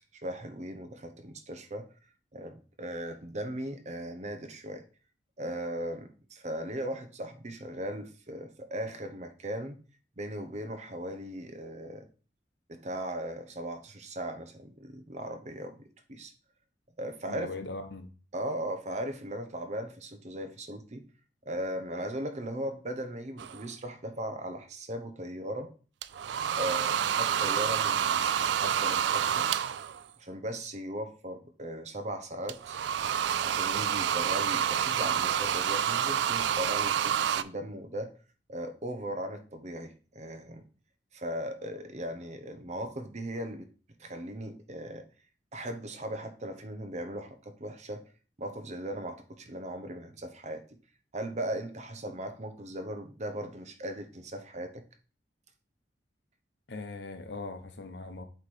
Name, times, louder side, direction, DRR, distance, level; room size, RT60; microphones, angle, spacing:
voice 1, 0.0-1.9 2.3-4.8 5.4-9.8 10.2-12.1 12.7-16.3 17.0-17.5 18.3-21.0 21.5-25.7 26.5-29.5 30.2-32.8 33.4-38.1 38.5-40.6 41.1-43.7 44.0-45.0 45.5-48.0 48.4-50.6 51.1-54.8, right 1 dB, 40° right, 8 dB, 0.8 m, -38 dB
voice 2, 17.3-18.1 56.7-58.2, left 3 dB, 80° left, 8 dB, 0.9 m, -40 dB
sound 1, 23.4-23.6 26.0-30.0 32.5-37.4, right 9 dB, 80° right, 0.3 m, -28 dB
8.0 x 3.2 x 4.2 m, 0.37 s
head